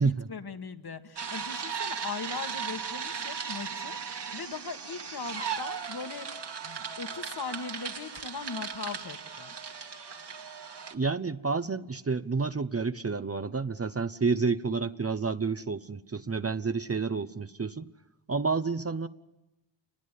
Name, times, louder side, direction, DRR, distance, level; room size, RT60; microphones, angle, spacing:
voice 1, 0.0-9.5, left 5 dB, 55° left, 7 dB, 1.9 m, -40 dB
sound 1, 1.2-10.9, right 6 dB, 60° right, 2.2 m, -37 dB
voice 2, 10.9-17.9 18.3-19.1, right 4 dB, 30° right, 9 dB, 0.9 m, -29 dB
28.5 x 21.0 x 8.4 m, 0.98 s
cardioid pair, 70°, 46 cm